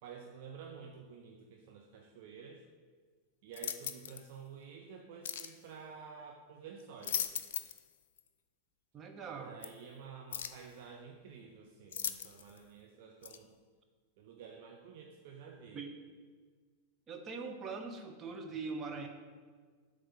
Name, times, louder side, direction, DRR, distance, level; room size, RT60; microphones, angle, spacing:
voice 1, 0.0-2.6 3.4-7.3 9.3-13.6 14.2-15.8, right 6 dB, 50° right, 1 dB, 0.6 m, -51 dB
sound 1, 3.5-4.3 5.2-5.6 6.8-7.9 8.2-8.3 9.6-9.7 10.3-10.7 11.9-12.6 13.2-13.4, left 9 dB, 60° left, 0.4 m, -39 dB
voice 2, 8.9-9.5 15.7-15.9 17.1-19.1, right 4 dB, 25° right, 4 dB, 0.9 m, -42 dB
7.8 x 3.3 x 5.8 m, 1.6 s
figure-of-eight pair, 90°, 0 cm